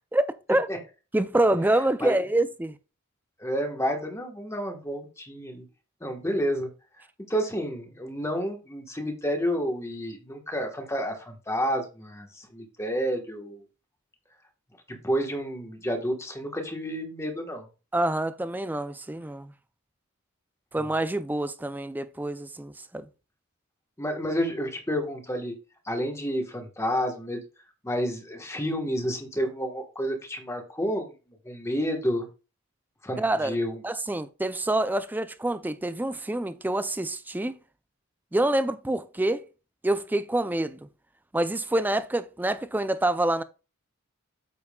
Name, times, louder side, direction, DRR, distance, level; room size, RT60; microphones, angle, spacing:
voice 1, 0.1-0.7 1.1-2.8 17.9-19.5 20.7-23.0 33.2-33.6 33.8-37.6 38.3-39.4 39.8-40.8 41.3-43.4, right 1 dB, 10° right, 0.3 m, -26 dB
voice 2, 3.4-5.6 6.0-6.7 7.3-13.6 14.9-17.7 24.0-25.5 25.8-27.4 27.8-31.1 31.4-32.3 33.0-33.8, equal, 15° left, 1.2 m, -30 dB
8.5 x 7.0 x 2.3 m
head